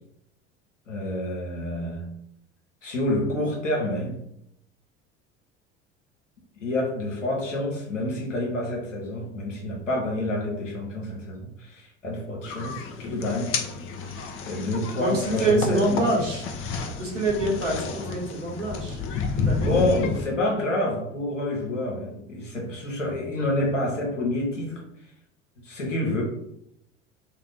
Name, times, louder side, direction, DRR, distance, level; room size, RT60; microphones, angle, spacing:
voice 1, 0.9-2.1 2.8-4.2 6.6-13.6 14.4-16.1 19.6-24.8 25.6-26.2, left 1 dB, 90° left, -2 dB, 0.8 m, -28 dB
sound 1, 12.4-20.3, left 4 dB, 35° left, 0.5 m, -31 dB
voice 2, 15.0-16.4 17.0-19.0 19.3-19.7, right 1 dB, 85° right, -2 dB, 0.9 m, -25 dB
2.5 x 2.1 x 3.3 m, 0.78 s
figure-of-eight pair, 65°, 36 cm